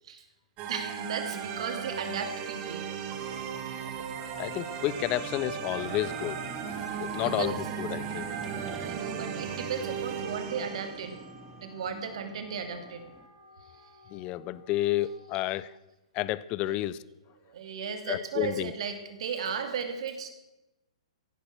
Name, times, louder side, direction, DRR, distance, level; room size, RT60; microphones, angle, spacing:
sound 1, 0.6-11.3, right 7 dB, 35° right, 2.2 m, -36 dB
voice 1, 0.7-2.9 7.4-7.6 8.3-11.2 11.6-13.0 16.7-16.8 17.4-20.3, right 6 dB, 65° right, 7 dB, 2.5 m, -35 dB
Wind instrument woodwind instrument, 1.8-15.9, left 1 dB, 75° left, 5.2 m, -55 dB
voice 2, 4.4-6.5 7.0-8.3 14.1-15.7 16.1-17.0 18.1-18.7, left 15 dB, 35° left, 19 dB, 0.6 m, -31 dB
sound 2, 4.5-13.3, right 4 dB, 10° right, 1.0 m, -47 dB
16.0 x 11.0 x 6.0 m, 1.0 s
hypercardioid pair, 120°, 3 cm